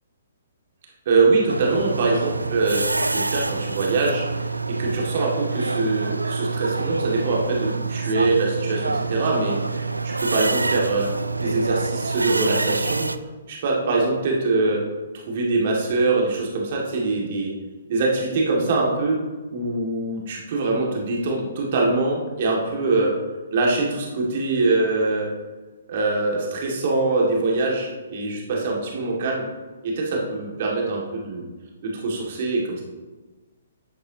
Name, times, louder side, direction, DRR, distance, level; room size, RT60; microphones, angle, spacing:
voice 1, 1.1-4.5 4.8-11.1 11.4-13.1 13.5-14.8 15.3-17.5 17.9-19.2 19.5-23.1 23.5-25.3 25.9-29.4 29.8-31.5 31.8-32.8, right 3 dB, 45° right, -2 dB, 2.2 m, -23 dB
sound 1, 1.5-13.2, right 3 dB, 80° right, 0.4 m, -26 dB
11.0 x 8.3 x 2.9 m, 1.3 s
figure-of-eight pair, 125°, 0 cm